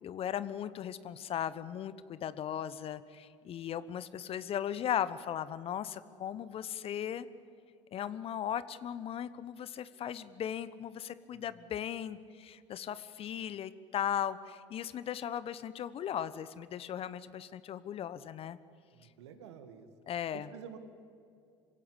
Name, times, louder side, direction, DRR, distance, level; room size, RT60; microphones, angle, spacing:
voice 1, 0.0-7.3 7.9-18.6 20.1-20.5, left 10 dB, 40° left, 16 dB, 1.1 m, -37 dB
voice 2, 11.3-11.7 18.9-19.9 20.3-20.8, right 8 dB, 70° right, 8 dB, 2.3 m, -50 dB
27.0 x 16.5 x 9.9 m, 2.4 s
figure-of-eight pair, 65°, 15 cm